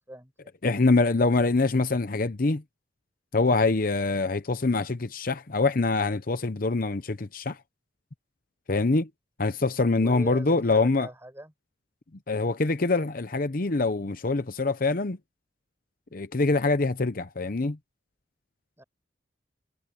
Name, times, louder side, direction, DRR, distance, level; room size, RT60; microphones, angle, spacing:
voice 1, 0.1-0.5 10.0-11.5 18.8-18.9, right 1 dB, 15° right, 6.5 m, -41 dB
voice 2, 0.6-2.6 3.3-7.6 8.7-9.1 9.4-11.1 12.3-15.2 16.1-17.8, left 3 dB, 45° left, 0.8 m, -24 dB
head